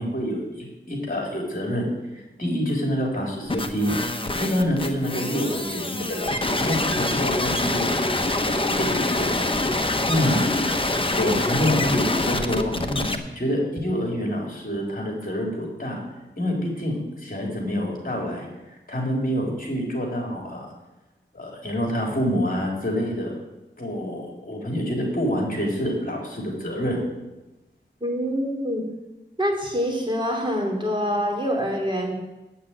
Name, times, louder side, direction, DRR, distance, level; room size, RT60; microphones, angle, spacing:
voice 1, 0.0-4.1 4.4-9.3 10.1-10.4 11.1-16.0 16.4-20.7 21.3-23.3 23.8-27.0, equal, 45° left, -1 dB, 3.7 m, -27 dB
sound 1, 3.5-13.2, left 2 dB, 25° left, 1.0 m, -25 dB
voice 2, 28.0-28.8 29.4-32.2, equal, 25° right, 0 dB, 3.1 m, -25 dB
8.6 x 8.4 x 8.8 m, 1.0 s
wide cardioid pair, 60°, 20 cm